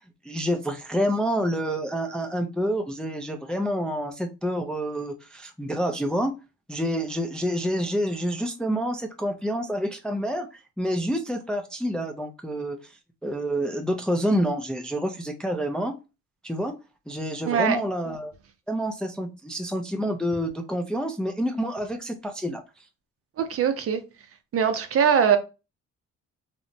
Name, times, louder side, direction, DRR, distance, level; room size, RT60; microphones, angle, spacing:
voice 1, 0.3-6.3 6.7-10.5 10.8-12.8 13.2-15.9 16.4-16.7 17.1-18.3 18.7-22.6, equal, 5° left, 0.4 m, -28 dB
voice 2, 17.5-17.8 23.4-24.0 24.5-25.4, right 8 dB, 50° right, 0.5 m, -21 dB
2.8 x 2.1 x 2.6 m
cardioid pair, 90°, 30 cm